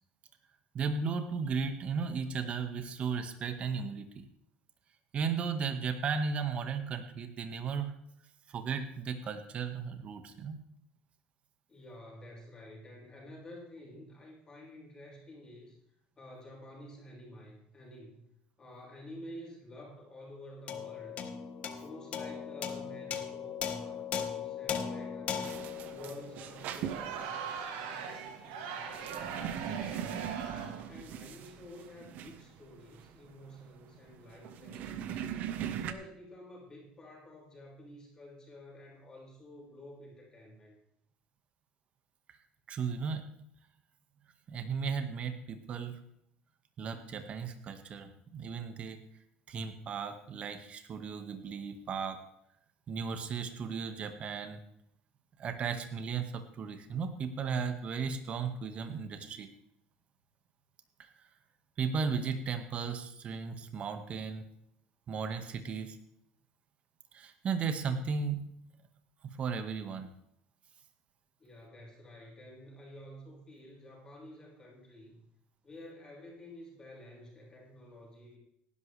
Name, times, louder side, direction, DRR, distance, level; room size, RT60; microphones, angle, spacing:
voice 1, 0.7-4.3 5.1-7.9 8.5-10.6 42.7-43.2 44.5-46.0 46.8-49.0 49.5-52.2 52.9-54.6 55.4-59.5 61.0-61.1 61.8-64.4 65.1-66.0 67.1-68.4 69.2-70.1, right 5 dB, 40° right, 7 dB, 1.7 m, -35 dB
voice 2, 11.7-15.8 16.2-18.2 18.6-21.3 21.7-25.4 25.9-30.3 30.9-35.2 35.7-40.8 71.4-75.3 75.6-78.4, left 1 dB, 25° left, -2 dB, 5.8 m, -51 dB
sound 1, 20.7-27.3, left 7 dB, 45° left, 1.5 m, -38 dB
sound 2, 25.4-35.9, right 9 dB, 60° right, 1.3 m, -41 dB
Crowd, 26.8-30.9, right 6 dB, 90° right, 2.5 m, -40 dB
18.0 x 11.5 x 3.4 m, 0.72 s
cardioid pair, 125°, 3 cm